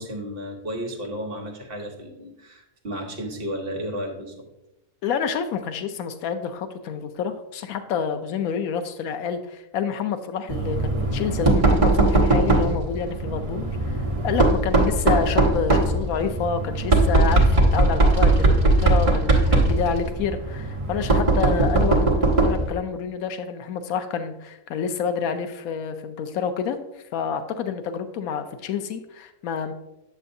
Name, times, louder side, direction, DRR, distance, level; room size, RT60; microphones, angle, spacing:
voice 1, 0.0-4.5, equal, 45° right, 1 dB, 1.2 m, -33 dB
voice 2, 5.0-26.8 27.1-29.7, left 7 dB, 80° left, 8 dB, 1.0 m, -28 dB
Knock, 10.5-22.7, right 2 dB, 25° right, 0.9 m, -20 dB
8.5 x 6.6 x 2.6 m, 0.92 s
omnidirectional pair, 1.5 m